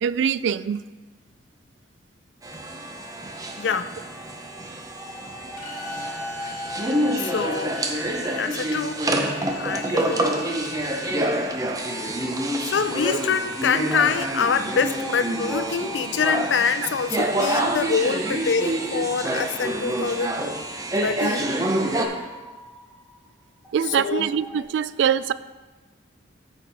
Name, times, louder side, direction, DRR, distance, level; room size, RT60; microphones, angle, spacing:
voice 1, 0.0-0.8 23.7-25.3, right 8 dB, 70° right, 16 dB, 0.3 m, -23 dB
sound 1, 2.4-22.1, right 1 dB, 20° right, 0.7 m, -27 dB
voice 2, 3.6-3.9 7.2-7.8 8.4-9.0 9.5-10.3 12.6-20.3 21.0-21.5 23.9-24.3, left 6 dB, 75° left, 12 dB, 0.4 m, -25 dB
sound 2, 4.9-9.0 9.4-20.0 20.7-24.6, left 1 dB, 5° left, 1.4 m, -42 dB
Bowed string instrument, 5.6-11.3, left 2 dB, 45° left, 1.2 m, -42 dB
13.0 x 4.6 x 4.0 m, 1.3 s
head